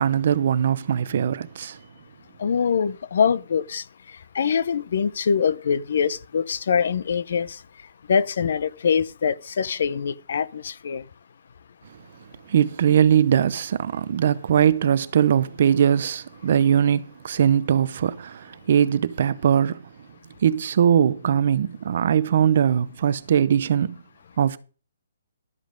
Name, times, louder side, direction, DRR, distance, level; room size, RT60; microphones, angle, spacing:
voice 1, 0.0-1.8 12.5-19.8 20.4-24.0 24.4-24.6, right 8 dB, 40° right, 0.6 m, -21 dB
voice 2, 2.4-3.8 4.3-7.6 8.1-11.0, left 6 dB, 50° left, 0.6 m, -23 dB
12.5 x 7.4 x 5.1 m
hypercardioid pair, 175°, 0 cm